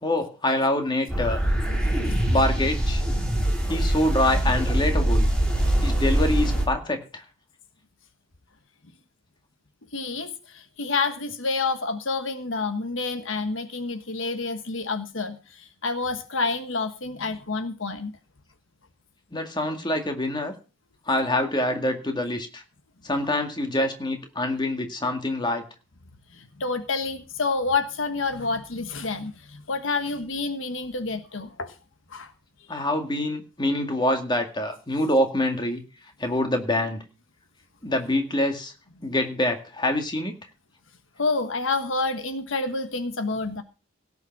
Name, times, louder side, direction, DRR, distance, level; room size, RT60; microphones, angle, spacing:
voice 1, 0.0-1.4 2.3-3.0 3.7-5.3 5.8-7.2 19.3-20.5 21.1-22.6 23.0-25.6 32.7-35.8 36.2-37.0 37.8-38.7 39.0-40.4, left 1 dB, 20° left, 5 dB, 2.1 m, -25 dB
sound 1, 1.1-6.6, right 1 dB, 5° left, 4.2 m, -23 dB
voice 2, 9.9-18.1 26.3-31.7 32.1-32.3 41.2-43.6, left 3 dB, 70° left, 9 dB, 1.3 m, -28 dB
17.5 x 6.9 x 6.0 m, 0.34 s
head